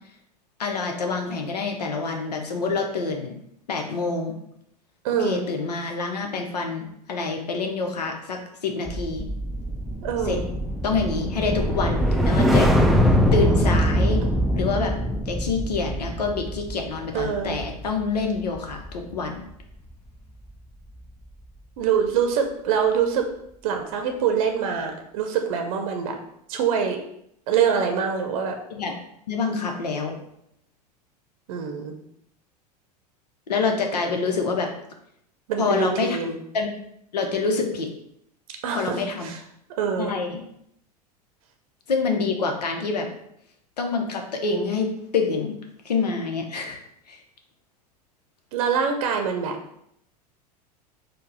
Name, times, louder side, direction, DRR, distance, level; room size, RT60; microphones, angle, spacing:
voice 1, 0.6-3.3 3.7-4.3 5.2-9.2 10.2-10.4 10.8-12.7 13.3-14.2 14.5-14.9 15.3-19.4 28.7-29.0 29.3-30.1 33.5-34.7 35.6-36.2 36.5-36.7 37.1-37.9 38.7-39.3 40.0-40.4 41.9-43.1 43.8-44.9 45.1-45.5 45.8-46.8 47.1-47.2, left 4 dB, 75° left, 3 dB, 0.8 m, -26 dB
voice 2, 5.0-5.4 10.0-10.5 17.1-17.6 21.8-23.3 23.6-26.2 26.5-27.0 27.5-28.5 31.5-32.0 35.5-36.4 38.6-39.4 39.8-40.1 48.5-49.6, right 7 dB, 55° right, 4 dB, 0.7 m, -24 dB
sound 1, 8.9-19.3 19.6-19.9, equal, ahead, 0.4 m, -23 dB
4.5 x 2.3 x 4.7 m, 0.74 s
figure-of-eight pair, 85°, 21 cm